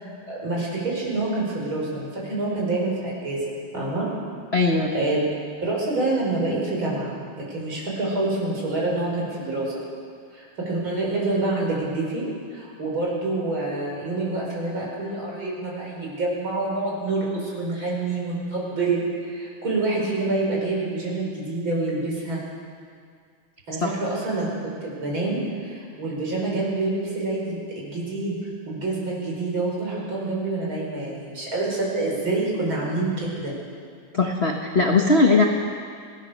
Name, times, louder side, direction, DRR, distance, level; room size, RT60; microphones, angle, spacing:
voice 1, 0.0-4.1 4.9-5.2 5.6-9.7 10.3-12.2 12.5-22.4 23.7-28.4 28.7-33.5, right 2 dB, 40° right, -3 dB, 6.1 m, -27 dB
voice 2, 4.5-4.9 23.8-23.9 34.1-35.4, left 3 dB, 50° left, 1 dB, 0.7 m, -19 dB
25.0 x 17.5 x 6.6 m, 2.1 s
omnidirectional pair, 3.3 m